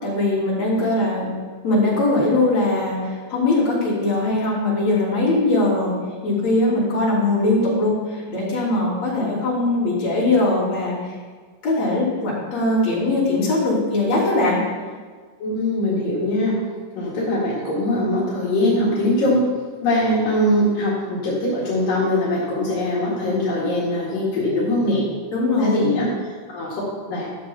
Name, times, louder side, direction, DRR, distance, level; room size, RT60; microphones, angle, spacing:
voice 1, 0.0-1.3 1.6-5.9 6.2-11.2 11.6-14.6 25.3-25.9, left 2 dB, 55° left, -9 dB, 4.4 m, -21 dB
voice 2, 15.4-16.6 17.0-19.4 19.8-25.0 25.6-26.8 27.1-27.3, left 1 dB, 75° left, -7 dB, 3.9 m, -22 dB
12.5 x 7.0 x 4.4 m, 1.5 s
omnidirectional pair, 3.9 m